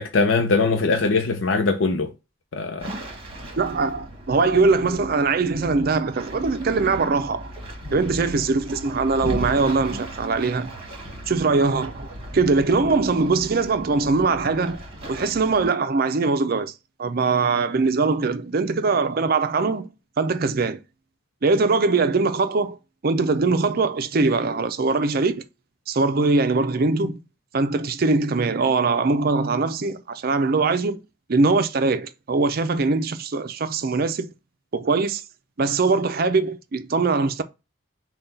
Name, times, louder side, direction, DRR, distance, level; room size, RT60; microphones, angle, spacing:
voice 1, 0.0-2.1 2.5-2.9, left 3 dB, 80° left, 0.6 m, -21 dB
sound 1, 2.8-15.7, right 1 dB, 30° right, 1.4 m, -37 dB
voice 2, 3.6-7.5 7.9-10.7 11.3-12.1 12.3-14.8 15.1-16.7 17.0-20.8 21.4-22.8 23.0-25.5 25.9-27.2 27.5-31.0 31.3-34.3 34.7-35.2 35.6-37.4, right 3 dB, 50° right, 0.5 m, -22 dB
5.7 x 2.3 x 3.9 m
head